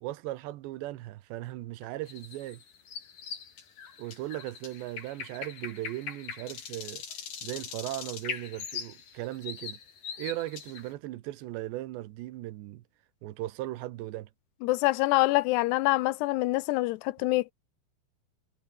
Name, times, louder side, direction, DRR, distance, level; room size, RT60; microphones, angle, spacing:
voice 1, 0.0-2.6 4.0-7.0 7.4-9.8 10.2-12.8 13.2-14.3, right 16 dB, 85° right, 3.3 m, -37 dB
sound 1, 2.1-10.9, left 7 dB, 55° left, 4.8 m, -41 dB
voice 2, 14.6-17.5, left 20 dB, 85° left, 2.7 m, -25 dB
omnidirectional pair, 4.9 m